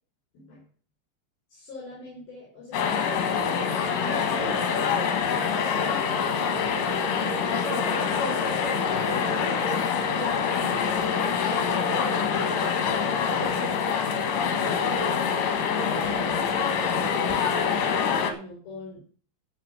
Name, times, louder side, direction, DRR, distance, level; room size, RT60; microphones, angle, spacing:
voice 1, 0.3-0.6 1.5-3.0 4.0-7.5 8.4-9.6 10.4-11.9 12.3-13.6 14.5-19.0, left 3 dB, 55° left, -5 dB, 6.1 m, -42 dB
sound 1, 2.7-18.3, left 6 dB, 75° left, 3.7 m, -25 dB
13.0 x 5.2 x 7.8 m, 0.42 s
omnidirectional pair, 5.1 m